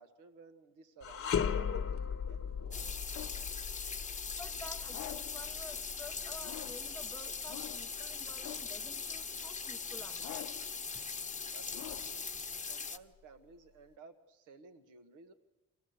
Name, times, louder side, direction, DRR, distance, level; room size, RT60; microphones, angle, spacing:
voice 1, 0.0-3.0 11.5-12.2 12.7-15.3, right 4 dB, 85° right, 1.4 m, -57 dB
sound 1, 1.0-10.3 10.7-10.9 11.7-12.6, left 7 dB, 50° left, 1.2 m, -39 dB
sound 2, 1.4-3.5 4.9-5.5 6.4-6.9 7.5-8.0 8.4-8.9 10.2-10.7 11.7-12.3, left 14 dB, 70° left, 0.6 m, -48 dB
sound 3, 2.7-13.0, left 5 dB, 25° left, 1.0 m, -41 dB
voice 2, 4.4-10.5, left 1 dB, 10° left, 0.7 m, -51 dB
24.5 x 16.0 x 8.0 m
cardioid pair, 90°, 30 cm